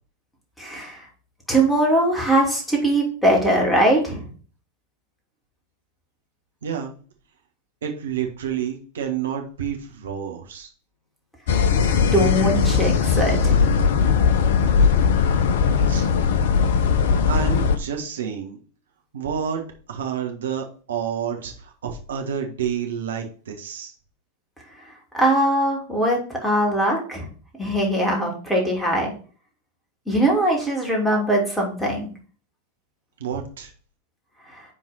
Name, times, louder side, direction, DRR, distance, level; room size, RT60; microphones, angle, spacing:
voice 1, 0.6-1.0 1.5-4.3 12.1-13.6 25.1-27.3 27.6-29.1 30.1-32.1, right 1 dB, 5° left, -1 dB, 3.0 m, -21 dB
voice 2, 6.6-6.9 7.8-10.7 15.9-16.1 17.3-18.6 19.1-19.6 19.9-23.9 33.2-33.7, right 8 dB, 65° right, 3 dB, 1.6 m, -29 dB
sound 1, 11.5-17.8, left 6 dB, 55° left, 0.9 m, -19 dB
10.0 x 3.9 x 4.3 m, 0.41 s
figure-of-eight pair, 90°, 0 cm